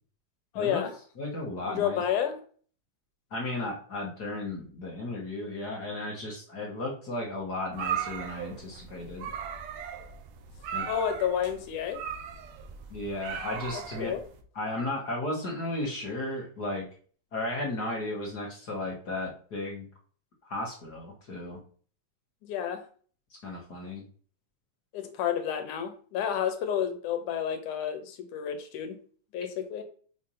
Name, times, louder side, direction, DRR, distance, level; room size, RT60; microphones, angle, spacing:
voice 1, 0.5-0.9 1.6-2.4 10.9-12.0 13.7-14.2 22.4-22.8 24.9-29.0 29.3-29.8, left 9 dB, 75° left, 7 dB, 2.4 m, -30 dB
voice 2, 1.2-2.0 3.3-9.3 10.7-10.9 12.9-14.1 14.5-16.9 17.3-19.9 20.4-21.6 23.4-24.0, left 2 dB, 40° left, -2 dB, 1.5 m, -34 dB
sound 1, 7.7-14.4, right 8 dB, 70° right, 1.7 m, -38 dB
6.1 x 3.5 x 5.6 m, 0.43 s
omnidirectional pair, 3.7 m